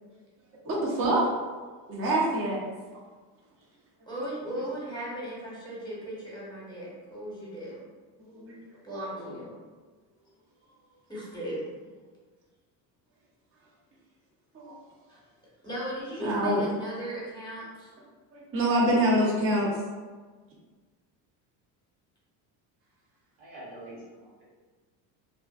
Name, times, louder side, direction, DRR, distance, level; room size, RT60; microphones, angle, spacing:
voice 1, 0.7-1.3 1.9-2.7 8.4-8.5 8.9-9.0 14.5-14.7 16.2-16.6 18.3-19.7, right 1 dB, 30° right, -5 dB, 0.6 m, -25 dB
voice 2, 4.1-7.8 8.8-9.5 11.1-11.7 15.1-15.2 15.6-17.9, right 1 dB, 10° left, -7 dB, 0.9 m, -37 dB
voice 3, 9.1-9.4 23.4-24.4, right 1 dB, 85° right, -7 dB, 1.2 m, -45 dB
2.4 x 2.4 x 2.3 m, 1.4 s
supercardioid pair, 75°, 50 cm